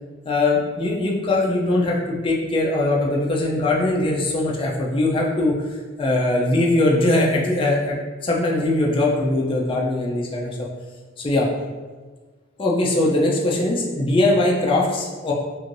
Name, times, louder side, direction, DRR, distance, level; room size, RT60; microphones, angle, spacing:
voice 1, 0.3-10.7 11.2-11.5 12.6-15.3, left 2 dB, 25° left, -3 dB, 0.3 m, -21 dB
3.1 x 2.5 x 2.5 m, 1.4 s
head